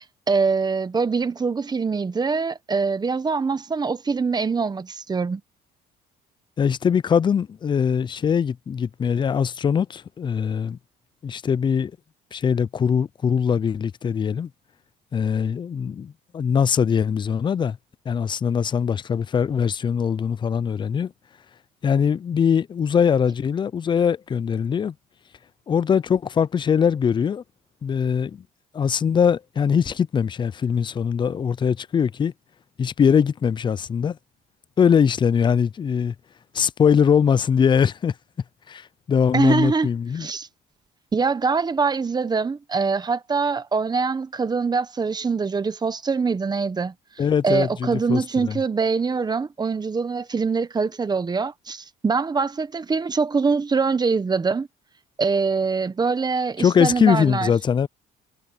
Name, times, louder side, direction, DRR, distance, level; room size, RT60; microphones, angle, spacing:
voice 1, 0.3-5.4 39.3-39.9 40.2-40.5 41.1-46.9 47.4-54.7 55.2-57.5, right 4 dB, 25° right, 1.3 m, -23 dB
voice 2, 6.6-10.8 11.2-11.9 12.3-14.5 15.1-17.8 18.1-21.1 21.8-24.9 25.7-27.4 27.8-28.4 28.7-32.3 32.8-34.2 34.8-36.1 36.5-38.1 38.7-40.3 47.2-48.6 56.6-57.9, left 7 dB, 30° left, 0.4 m, -21 dB
cardioid pair, 110°, 17 cm